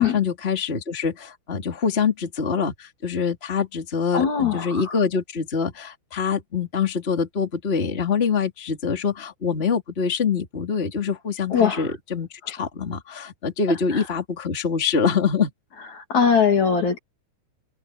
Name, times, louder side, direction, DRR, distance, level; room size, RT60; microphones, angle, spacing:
voice 1, 0.0-15.5, left 6 dB, 15° left, 2.7 m, -25 dB
voice 2, 4.1-4.8 11.5-11.8 13.9-14.0 16.1-17.0, left 7 dB, 50° left, 3.6 m, -20 dB
open air
omnidirectional pair, 4.6 m